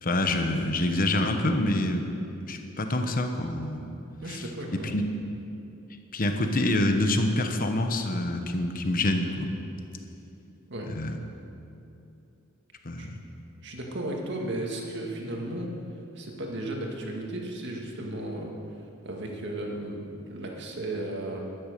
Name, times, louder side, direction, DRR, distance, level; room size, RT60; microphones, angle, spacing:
voice 1, 0.0-2.0 2.5-3.8 4.3-4.4 4.7-5.0 6.1-9.5 10.9-11.2 12.8-13.2, left 1 dB, 45° left, 5 dB, 1.1 m, -26 dB
voice 2, 4.2-4.9 10.7-10.9 13.0-13.1 13.6-15.7 16.2-18.5 19.0-20.0 20.3-21.4, right 1 dB, 60° right, 0 dB, 2.1 m, -34 dB
12.5 x 10.5 x 6.8 m, 2.7 s
head